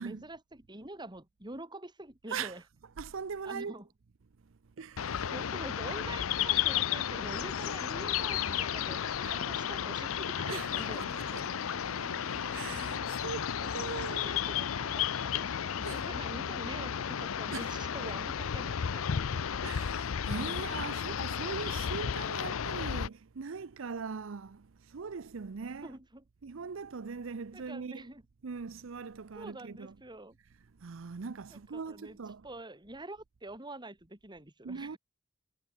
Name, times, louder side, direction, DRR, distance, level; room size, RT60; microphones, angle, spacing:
voice 1, 0.0-2.6 3.4-3.8 5.3-11.1 13.6-19.6 25.8-26.2 27.5-28.2 29.3-30.4 31.5-32.2 32.4-35.0, right 2 dB, 20° right, 5.0 m, -46 dB
voice 2, 2.3-2.6 3.0-3.8 4.8-5.3 9.2-9.4 10.5-11.5 12.5-14.4 15.8-16.1 17.5-17.7 18.0-18.1 19.6-26.0 26.4-28.1 28.4-30.0 30.8-32.5 34.6-35.0, right 5 dB, 70° right, 0.6 m, -41 dB
sound 1, 5.0-23.1, left 8 dB, 85° left, 0.6 m, -33 dB
Bowed string instrument, 10.3-13.4, right 3 dB, 45° right, 5.0 m, -53 dB
head